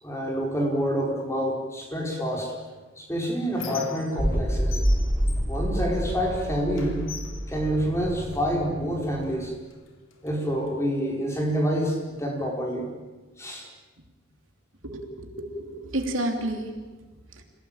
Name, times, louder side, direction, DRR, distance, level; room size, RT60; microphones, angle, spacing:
voice 1, 0.0-2.5 3.0-4.8 5.5-7.0 7.5-9.5 10.2-12.9 13.4-13.7, equal, 15° left, 0 dB, 4.8 m, -27 dB
Squeak, 2.6-4.4 4.7-6.4 6.7-8.5 9.2-9.4 9.7-10.7, left 5 dB, 90° left, 3.0 m, -43 dB
sound 1, 4.2-9.3, equal, 10° right, 2.5 m, -28 dB
voice 2, 14.8-16.7 17.3-17.4, right 1 dB, 80° right, 4 dB, 3.2 m, -31 dB
27.0 x 17.5 x 8.9 m, 1.3 s
head